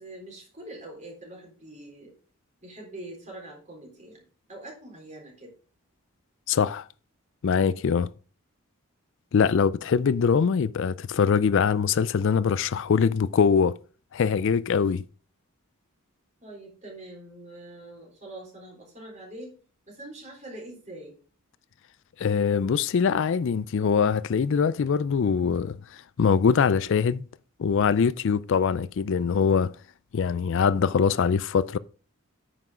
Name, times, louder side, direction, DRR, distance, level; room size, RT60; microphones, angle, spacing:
voice 1, 0.0-2.1 2.6-4.2 4.5-5.5 16.4-19.6 19.9-21.2, right 1 dB, 35° right, 3.9 m, -44 dB
voice 2, 6.5-6.9 7.4-8.1 9.3-13.7 14.1-15.0 22.2-27.2 27.6-29.7 30.1-31.8, left 6 dB, 60° left, 0.4 m, -23 dB
9.2 x 6.0 x 4.9 m
head